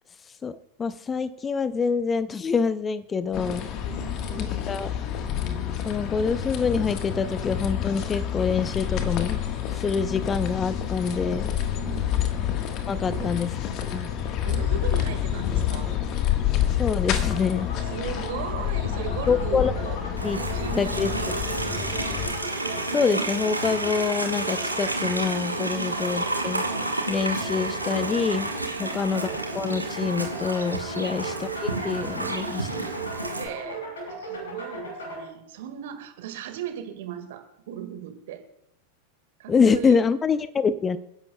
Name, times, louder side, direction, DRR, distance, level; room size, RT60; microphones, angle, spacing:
voice 1, 0.4-3.7 4.4-4.9 5.8-9.4 9.8-11.5 12.9-13.5 13.9-14.1 16.8-17.7 19.3-19.7 20.2-20.4 20.8-21.1 22.9-26.6 27.1-28.5 28.8-29.3 29.5-31.5 31.8-32.9 39.5-41.0, left 5 dB, 20° left, 16 dB, 0.5 m, -26 dB
sound 1, 3.3-22.3, left 10 dB, 35° left, 1.4 m, -28 dB
voice 2, 3.9-4.6 11.8-12.4 13.1-13.4 14.4-15.9 17.8-20.0 20.3-21.7 25.7-26.0 28.7-29.3 33.2-38.4 39.4-40.0, right 9 dB, 55° right, 7 dB, 1.7 m, -38 dB
sound 2, 16.9-35.2, right 1 dB, 65° left, 5.7 m, -37 dB
Livestock farm animals working animals, 20.2-33.4, right 2 dB, 85° right, 1.3 m, -30 dB
29.0 x 10.5 x 2.3 m, 0.80 s
figure-of-eight pair, 90°, 0 cm